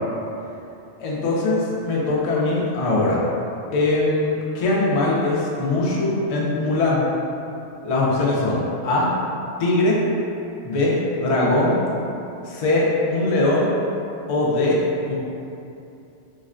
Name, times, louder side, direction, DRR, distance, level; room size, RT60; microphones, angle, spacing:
voice 1, 1.0-3.2 3.7-7.1 7.8-9.1 9.6-10.0 10.6-11.8 12.5-13.7 14.3-14.8 15.1-15.2, left 2 dB, 55° left, -5 dB, 0.4 m, -21 dB
4.0 x 2.1 x 2.4 m, 2.7 s
omnidirectional pair, 1.2 m